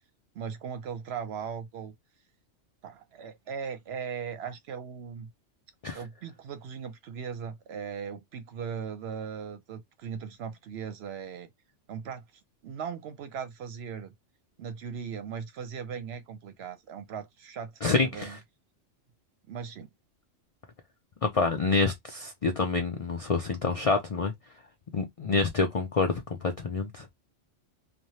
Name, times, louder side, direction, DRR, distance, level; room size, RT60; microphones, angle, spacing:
voice 1, 0.3-1.9 2.8-5.3 5.9-11.5 11.9-12.3 12.6-14.1 14.6-18.4 19.5-19.9, right 7 dB, 65° right, 0.8 m, -38 dB
voice 2, 17.8-18.4 21.2-24.3 24.9-27.1, left 4 dB, 65° left, 0.3 m, -27 dB
3.1 x 2.2 x 2.7 m
omnidirectional pair, 1.3 m